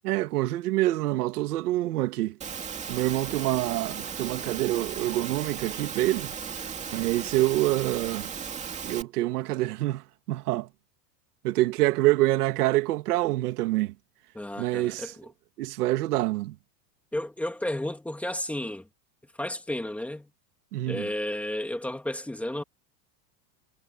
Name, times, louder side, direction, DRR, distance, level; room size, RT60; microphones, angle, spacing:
voice 1, 0.0-2.4 2.9-6.3 6.9-8.3 8.8-10.7 11.4-13.9 14.6-15.0 15.6-16.5 20.7-21.0, right 17 dB, 75° right, 2.6 m, -26 dB
Engine / Mechanisms, 2.4-9.0, right 7 dB, 15° right, 2.4 m, -36 dB
voice 2, 14.3-15.3 17.1-18.9 19.3-20.3 20.9-22.6, left 1 dB, 5° left, 2.1 m, -32 dB
supercardioid pair, 170°, 46 cm